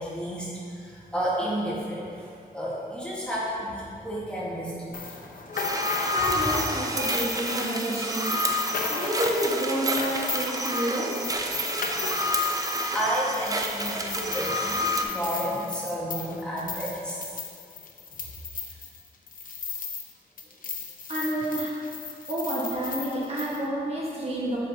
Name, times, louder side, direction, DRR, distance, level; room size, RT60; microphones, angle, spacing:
voice 1, 0.0-5.0 5.6-5.7 6.0-6.2 12.9-17.4, equal, 5° left, -8 dB, 1.5 m, -31 dB
sound 1, 4.9-20.1 20.4-23.6, left 5 dB, 55° left, 0.7 m, -35 dB
sound 2, 5.5-15.0, equal, 20° right, 0.4 m, -29 dB
voice 2, 6.1-8.4 8.9-11.1 21.1-21.8 22.3-24.6, right 1 dB, 40° right, -6 dB, 1.4 m, -29 dB
7.6 x 5.7 x 2.8 m, 2.4 s
wide cardioid pair, 125°, 16 cm